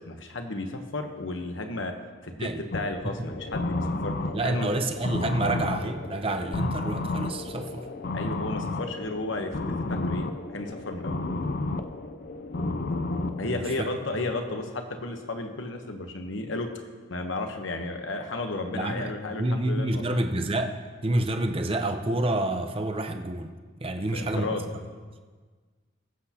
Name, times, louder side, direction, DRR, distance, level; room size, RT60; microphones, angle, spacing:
voice 1, 0.1-1.9 2.2-4.1 4.4-4.7 8.1-9.6 9.9-11.2 13.4-16.7 17.1-20.0 24.1-24.6, left 2 dB, 80° left, 5 dB, 1.1 m, -33 dB
sound 1, 2.7-13.8, left 2 dB, 55° left, 0.5 m, -32 dB
voice 2, 4.3-7.9 13.4-13.9 14.1-14.2 18.7-23.5 23.8-24.6, right 1 dB, 30° right, 6 dB, 0.7 m, -28 dB
21.0 x 8.2 x 2.9 m, 1.5 s
head